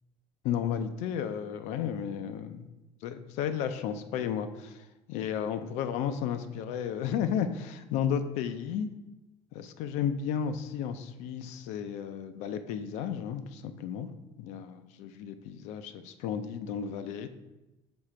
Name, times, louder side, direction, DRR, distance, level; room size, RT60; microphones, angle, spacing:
voice 1, 0.4-2.7 3.0-8.9 9.5-14.1 14.4-17.3, left 8 dB, 80° left, 9 dB, 0.5 m, -33 dB
6.1 x 3.2 x 5.0 m, 1.0 s
cardioid pair, 140°, 11 cm